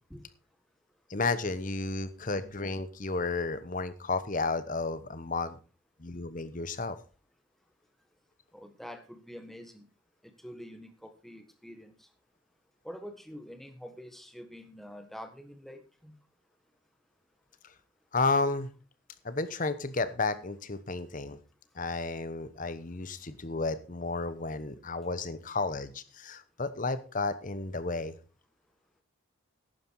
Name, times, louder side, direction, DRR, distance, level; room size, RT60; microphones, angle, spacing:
voice 1, 1.1-5.6 6.0-7.0 18.1-18.7 19.2-21.4 21.7-28.1, left 3 dB, 35° left, 13 dB, 1.0 m, -32 dB
voice 2, 8.5-9.9 10.4-12.1 12.8-16.1, equal, ahead, 6 dB, 1.4 m, -46 dB
11.5 x 9.4 x 4.7 m, 0.35 s
head